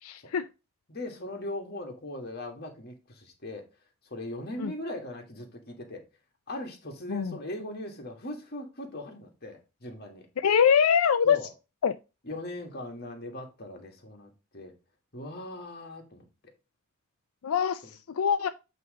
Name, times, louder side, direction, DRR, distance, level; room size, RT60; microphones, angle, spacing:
voice 1, 0.0-0.5 4.6-4.7 7.1-7.4 10.4-11.4 11.8-12.0 17.4-18.5, left 7 dB, 85° left, 0.4 m, -24 dB
voice 2, 0.9-3.7 4.0-6.0 6.5-10.3 11.2-11.6 12.2-14.7 15.1-16.5 17.8-18.0, left 1 dB, 45° left, 1.7 m, -39 dB
8.3 x 3.2 x 4.8 m
head